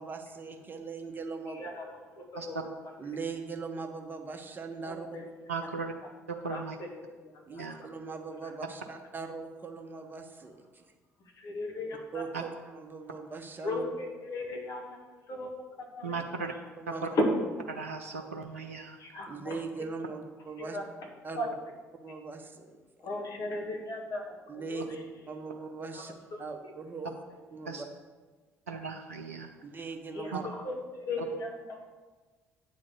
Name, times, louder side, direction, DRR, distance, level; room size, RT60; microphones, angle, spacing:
voice 1, 0.0-1.7 3.0-5.1 7.5-10.8 12.1-13.8 16.8-17.1 19.3-20.8 21.2-21.5 22.0-22.8 24.5-25.0 25.3-26.1 26.4-27.1 27.5-27.9 29.6-30.4, right 4 dB, 25° right, 4 dB, 1.1 m, -40 dB
voice 2, 2.2-2.6 4.8-5.2 6.5-7.0 7.3-7.7 8.4-8.5 11.4-12.2 13.6-15.5 16.0-16.2 17.2-17.3 19.0-19.6 20.6-21.1 21.4-21.5 23.0-25.0 25.9-26.0 30.1-31.8, left 1 dB, 45° left, 1 dB, 1.7 m, -36 dB
voice 3, 5.5-5.9 6.3-6.8 7.6-7.8 16.0-16.5 16.9-17.1 17.7-19.0 27.7-27.8 28.7-29.5, right 4 dB, 80° right, 4 dB, 0.4 m, -37 dB
8.7 x 3.8 x 6.7 m, 1.3 s
figure-of-eight pair, 50°, 7 cm